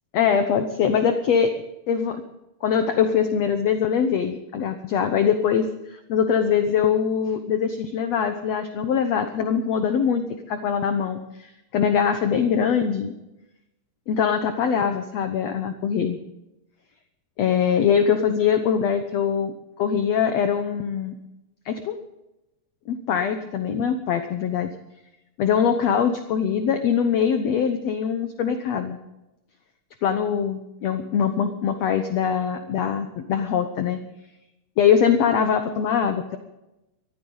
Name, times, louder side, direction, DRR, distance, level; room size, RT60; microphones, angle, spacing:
voice 1, 0.1-1.5 1.9-2.2 2.6-13.1 14.1-16.2 17.4-21.1 21.7-22.0 22.9-24.7 25.4-29.0 30.0-34.0 34.8-36.4, left 7 dB, 65° left, 7 dB, 1.8 m, -22 dB
23.0 x 15.0 x 4.0 m, 0.92 s
omnidirectional pair, 4.1 m